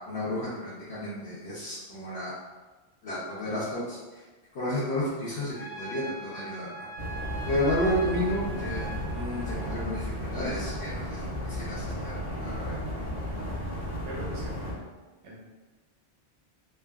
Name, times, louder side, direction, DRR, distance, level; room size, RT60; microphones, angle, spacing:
voice 1, 0.1-2.3 3.0-4.2 4.5-6.9 7.4-8.9 9.1-12.1 12.4-12.8, left 1 dB, 70° left, -9 dB, 0.9 m, -32 dB
Trumpet, 5.5-9.9, right 2 dB, 40° left, 0.8 m, -41 dB
sound 1, 7.0-14.7, equal, 30° right, 1.0 m, -34 dB
voice 2, 14.0-14.5 15.2-15.4, right 1 dB, 90° right, -3 dB, 1.0 m, -40 dB
3.2 x 2.0 x 2.2 m, 1.2 s
omnidirectional pair, 1.1 m